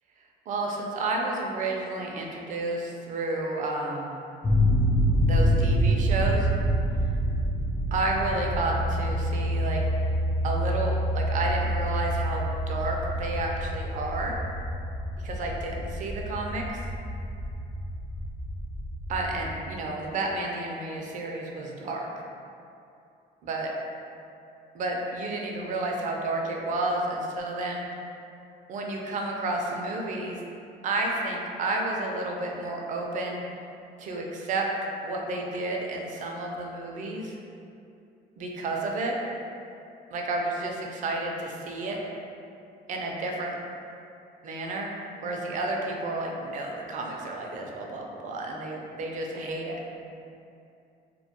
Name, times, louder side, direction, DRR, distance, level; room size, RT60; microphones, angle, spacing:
voice 1, 0.5-4.2 5.2-6.5 7.9-9.8 10.4-14.4 15.2-16.8 19.1-22.1 23.4-23.7 24.7-27.9 28.7-30.4 30.8-33.4 34.0-34.6 35.0-37.4 38.4-39.2 40.1-42.0 42.9-43.5 44.4-44.9 45.2-49.8, right 2 dB, 50° right, 0 dB, 0.4 m, -31 dB
bowed spacy string, 4.4-19.5, equal, 20° left, 0.4 m, -27 dB
2.2 x 2.1 x 2.7 m, 2.6 s
cardioid pair, 110°, 17 cm